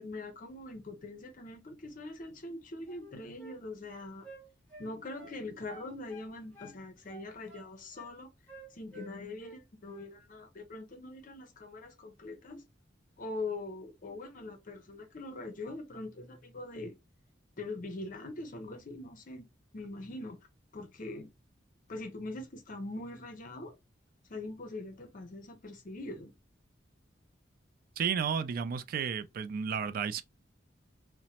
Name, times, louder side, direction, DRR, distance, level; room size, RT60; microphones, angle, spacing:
voice 1, 0.0-4.3 4.8-8.3 8.7-12.6 13.2-16.9 17.6-19.4 19.7-20.4 20.7-21.3 21.9-23.7 24.3-26.3, left 2 dB, 45° left, 0.6 m, -42 dB
sound 1, 2.9-3.6 3.8-5.4 5.7-6.8 7.1-8.1 8.5-9.6 9.9-10.1, right 2 dB, 10° left, 1.1 m, -51 dB
voice 2, 28.0-30.2, right 7 dB, 50° right, 0.3 m, -32 dB
2.9 x 2.1 x 2.8 m
head